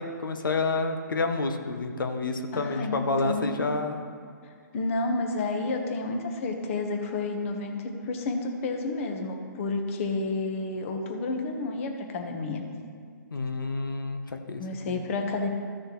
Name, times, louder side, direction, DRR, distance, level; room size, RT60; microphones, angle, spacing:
voice 1, 0.0-4.0 13.3-14.6 14.9-15.0, left 3 dB, 90° left, 6 dB, 0.9 m, -29 dB
voice 2, 2.5-3.6 4.7-12.6 14.6-15.5, left 3 dB, 40° left, 4 dB, 1.2 m, -30 dB
14.0 x 6.5 x 3.1 m, 2.2 s
hypercardioid pair, 150°, 11 cm